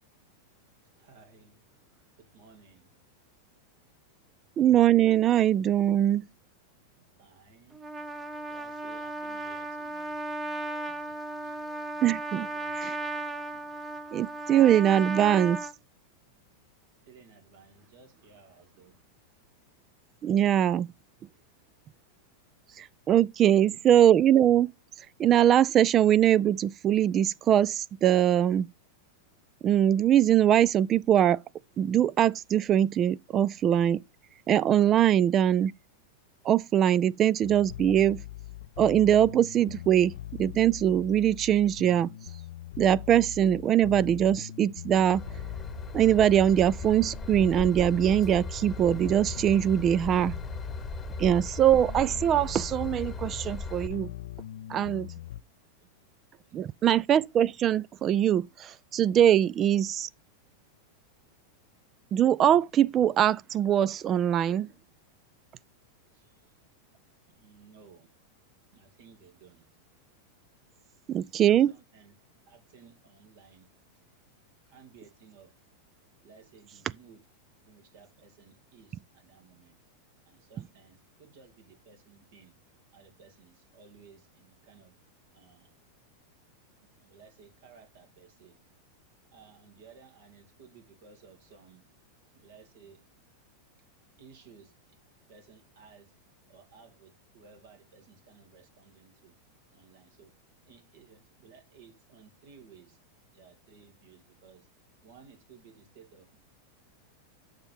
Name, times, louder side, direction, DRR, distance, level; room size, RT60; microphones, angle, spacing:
voice 1, 0.8-1.8 2.2-3.0 6.9-7.9 8.5-11.8 12.3-13.1 13.5-13.6 17.1-19.0 23.4-23.8 55.8-55.9 56.5-56.6 66.1-66.6 67.3-68.1 68.7-69.7 71.2-71.4 71.7-72.1 72.5-74.0 74.7-75.5 76.2-77.2 77.6-79.8 80.2-82.6 82.9-85.0 85.3-85.8 86.8-88.6 89.3-91.9 92.3-93.0 94.2-95.0 95.3-96.1 96.5-99.4 99.7-100.3 100.7-103.0 103.3-104.7 105.0-106.4, right 5 dB, 70° right, 2.3 m, -57 dB
voice 2, 4.6-6.3 12.0-12.5 12.8-13.0 14.1-15.6 20.2-20.9 22.7-24.7 25.0-28.7 29.6-31.4 31.8-34.0 34.5-35.7 36.4-38.2 38.8-42.4 42.8-45.4 45.9-50.4 51.2-54.1 54.7-55.1 56.5-60.1 62.1-64.7 71.1-71.7, right 10 dB, 35° right, 0.3 m, -22 dB
Trumpet, 7.7-15.7, right 2 dB, 15° right, 0.7 m, -36 dB
sound 1, 37.4-55.4, left 13 dB, 75° left, 0.4 m, -41 dB
Train / Engine, 45.1-53.9, left 2 dB, 20° left, 1.0 m, -38 dB
7.5 x 5.3 x 4.5 m
hypercardioid pair, 105°, 0 cm